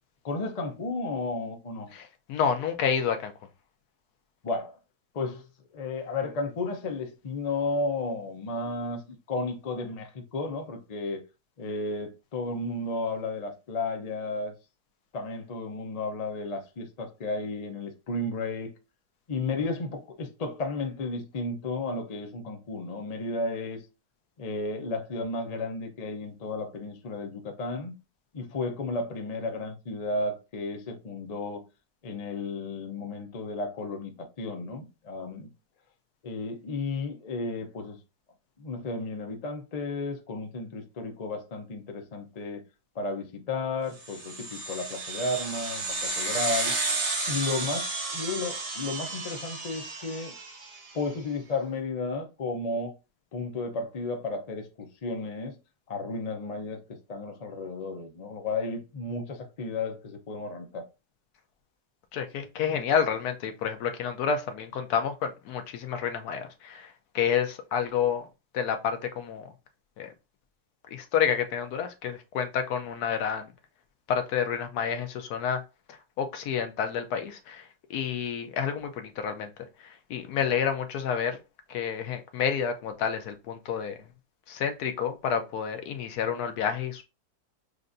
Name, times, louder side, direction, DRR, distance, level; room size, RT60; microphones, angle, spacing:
voice 1, 0.2-1.9 4.4-4.8 5.1-5.5 5.7-11.2 11.6-14.5 15.1-18.7 19.3-23.8 24.4-28.0 28.3-31.6 32.0-35.5 36.2-38.0 38.6-42.6 42.9-46.7 47.3-50.3 50.9-52.9 53.3-55.6 55.9-60.9, left 3 dB, 45° left, 0.5 m, -33 dB
voice 2, 1.9-3.3 62.1-68.3 68.5-69.5 70.0-70.1 70.9-73.5 74.1-75.6 75.9-79.5 79.8-81.4 81.7-84.0 84.5-87.0, left 7 dB, 75° left, 1.1 m, -29 dB
sound 1, 44.0-50.9, right 3 dB, 45° right, 1.1 m, -32 dB
6.4 x 2.5 x 2.5 m
omnidirectional pair, 1.7 m